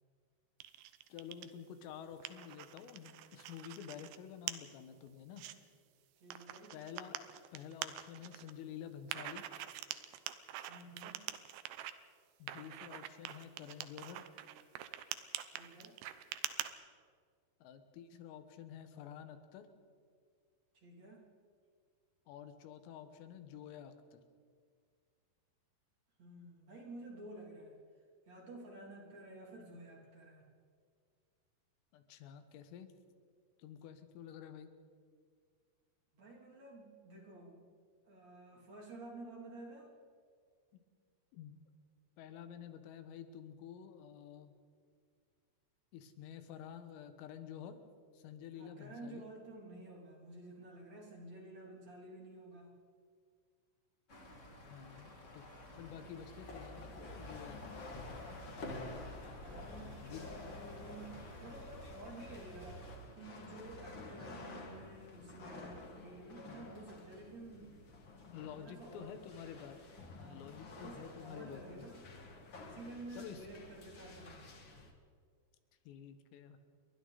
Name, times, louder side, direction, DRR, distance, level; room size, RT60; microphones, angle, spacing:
sound 1, 0.6-1.5 1.9-4.2 4.5-4.6 5.1-5.5 6.3-8.5 9.1-11.9 12.5-16.7, right 12 dB, 75° right, 2.6 m, -45 dB
voice 1, 1.1-5.5 6.7-9.5 12.4-14.3 17.6-19.7 22.3-24.2 31.9-32.9 33.6-34.7 41.3-41.6 42.2-44.5 45.9-47.8 48.1-49.3 54.6-55.5 55.7-57.9 59.8-60.3 68.3-69.8 70.2-71.9 73.1-73.5 75.9-76.6, left 8 dB, 90° left, 8 dB, 4.0 m, -50 dB
voice 2, 6.2-6.8 10.7-11.3 15.5-16.0 20.7-21.3 26.2-27.8 28.3-30.5 36.1-37.6 38.0-39.9 48.6-52.7 58.1-58.6 59.4-67.7 68.4-69.2 70.2-72.0 72.6-74.8, right 2 dB, 40° right, -1 dB, 3.7 m, -52 dB
sound 2, 54.1-63.0, left 1 dB, 35° left, 1.2 m, -52 dB
sound 3, 56.0-74.9, left 2 dB, 65° left, 1.1 m, -51 dB
29.0 x 23.0 x 4.1 m, 2.1 s
omnidirectional pair, 5.8 m